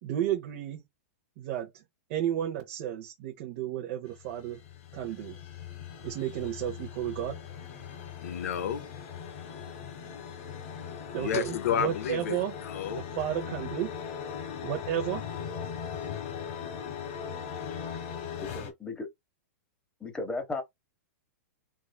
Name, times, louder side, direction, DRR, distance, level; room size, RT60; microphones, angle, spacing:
voice 1, 0.0-0.8 1.4-1.8 2.1-4.6 4.9-5.4 6.0-7.4 11.1-12.5 12.9-13.9 14.6-15.2, right 11 dB, 40° right, 0.7 m, -32 dB
sound 1, 4.1-18.7, left 7 dB, 55° left, 1.1 m, -39 dB
voice 2, 8.2-8.8 11.2-13.0, left 9 dB, 75° left, 0.6 m, -31 dB
voice 3, 18.5-19.1 20.0-20.6, left 3 dB, 10° left, 0.8 m, -35 dB
3.5 x 3.1 x 2.2 m
supercardioid pair, 160°, 8 cm